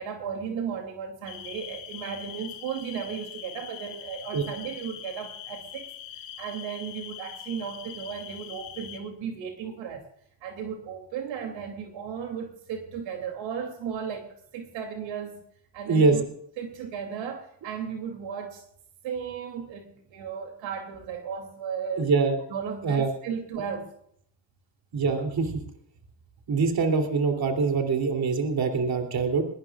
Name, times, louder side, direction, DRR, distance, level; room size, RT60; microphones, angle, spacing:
voice 1, 0.0-5.9 6.4-10.0 10.4-14.3 14.5-15.4 15.7-16.3 16.6-18.6 19.0-22.1 22.5-23.9, right 7 dB, 80° right, 4 dB, 2.9 m, -35 dB
sound 1, 1.3-9.0, left 10 dB, 85° left, 4.2 m, -42 dB
voice 2, 22.0-22.4 22.8-23.1 24.9-25.5 26.5-29.4, right 4 dB, 55° right, 3 dB, 3.1 m, -24 dB
20.5 x 19.0 x 2.4 m, 0.70 s
cardioid pair, 95°, 45 cm